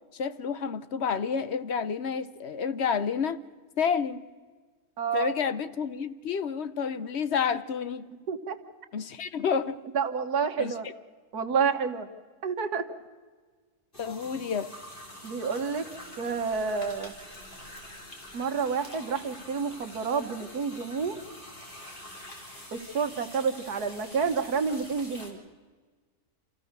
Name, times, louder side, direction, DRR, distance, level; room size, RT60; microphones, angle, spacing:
voice 1, 0.1-3.4 3.8-4.3 5.1-8.1 8.9-9.8 10.6-10.7 14.0-14.7, left 6 dB, 55° left, 13 dB, 0.9 m, -29 dB
voice 2, 5.0-5.3 8.3-8.6 9.9-10.9 11.3-12.1 12.4-12.9 15.2-15.9 16.2-17.1 18.3-21.2 22.7-25.4, right 5 dB, 80° right, 6 dB, 1.9 m, -29 dB
sound 1, 13.9-25.3, left 1 dB, 35° left, 3.1 m, -46 dB
27.5 x 15.0 x 6.6 m, 1.4 s
omnidirectional pair, 1.6 m